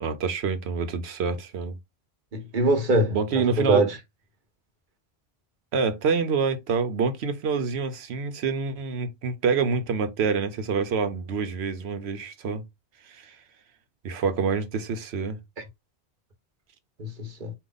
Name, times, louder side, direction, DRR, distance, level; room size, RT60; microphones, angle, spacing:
voice 1, 0.0-1.8 3.1-3.9 5.7-12.6 13.0-13.4 14.0-15.4, right 5 dB, 85° right, 1.0 m, -27 dB
voice 2, 2.3-3.9 17.0-17.5, right 1 dB, 50° right, 1.1 m, -23 dB
4.7 x 2.4 x 3.8 m
omnidirectional pair, 1.1 m